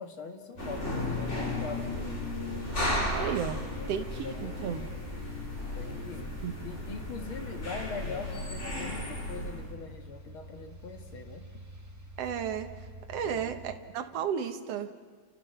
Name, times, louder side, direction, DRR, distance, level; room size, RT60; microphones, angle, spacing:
voice 1, 0.0-2.4 3.6-5.0 5.7-6.4 6.6-11.5 13.2-13.5, left 5 dB, 45° left, 5 dB, 2.5 m, -42 dB
sound 1, 0.5-13.8, right 1 dB, 15° right, 0.7 m, -47 dB
sound 2, 0.6-9.7, left 1 dB, 20° left, 4.2 m, -35 dB
voice 2, 3.1-4.9 6.4-6.8 12.2-12.7 13.1-14.9, right 8 dB, 60° right, 7 dB, 2.2 m, -34 dB
30.0 x 28.5 x 6.0 m, 1.5 s
omnidirectional pair, 3.5 m